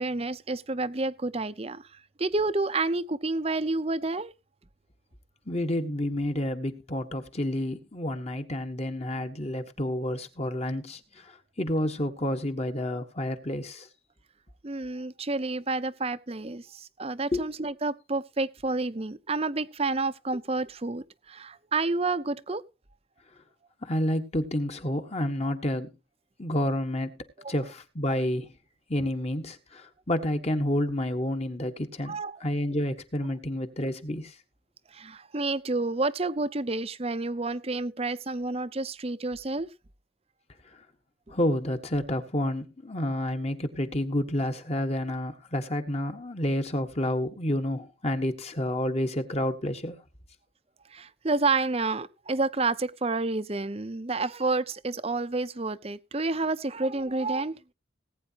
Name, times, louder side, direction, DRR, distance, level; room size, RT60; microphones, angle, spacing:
voice 1, 0.0-4.3 14.6-22.6 27.4-27.5 32.0-32.4 34.9-39.7 50.9-57.6, right 3 dB, 30° right, 0.8 m, -29 dB
voice 2, 5.5-13.9 17.3-17.5 23.8-25.9 26.4-27.1 27.5-28.5 28.9-34.3 41.3-50.0, left 1 dB, 30° left, 1.6 m, -29 dB
19.5 x 9.3 x 3.0 m
head